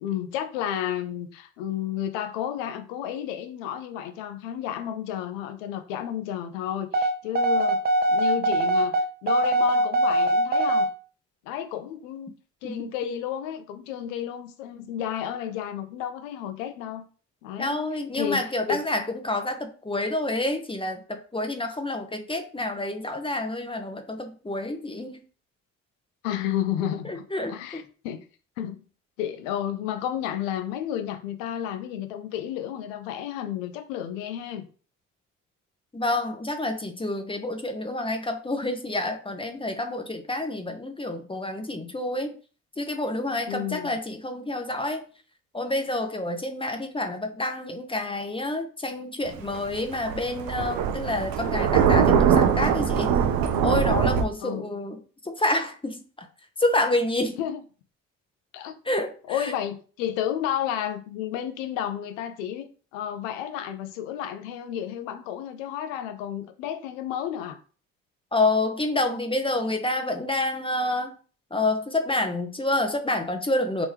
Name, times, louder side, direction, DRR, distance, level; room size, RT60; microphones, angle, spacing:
voice 1, 0.0-7.8 8.1-9.0 9.2-10.9 11.5-17.0 17.4-18.8 26.2-27.2 27.5-28.2 28.6-28.8 29.2-34.7 43.5-44.0 54.4-54.8 57.4-57.6 58.5-58.8 59.3-67.6, left 10 dB, 75° left, 0.6 m, -32 dB
sound 1, 6.9-10.9, right 1 dB, 25° right, 0.6 m, -22 dB
voice 2, 17.6-25.2 27.0-27.8 35.9-42.4 42.8-45.0 45.5-53.1 53.6-56.3 56.6-57.4 58.9-59.5 68.3-71.1 71.5-73.9, left 2 dB, 15° left, 0.8 m, -28 dB
Thunder, 49.3-54.2, right 7 dB, 60° right, 0.7 m, -22 dB
3.4 x 3.0 x 3.3 m
hypercardioid pair, 50°, 39 cm